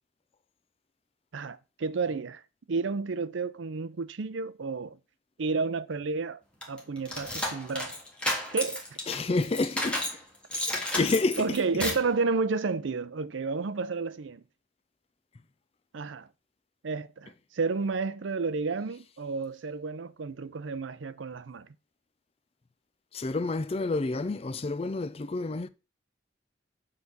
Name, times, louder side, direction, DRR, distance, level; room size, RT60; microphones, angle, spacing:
voice 1, 1.3-2.4 2.7-5.0 5.4-6.4 6.7-8.0 8.5-9.0 11.4-14.4 15.9-16.3 16.8-21.7, right 4 dB, 85° right, 0.5 m, -31 dB
sound 1, 6.6-10.2 10.5-12.1, left 1 dB, 5° left, 1.7 m, -32 dB
voice 2, 9.1-10.1 10.7-11.5 23.1-25.7, left 3 dB, 30° left, 0.4 m, -29 dB
7.4 x 4.0 x 6.0 m
head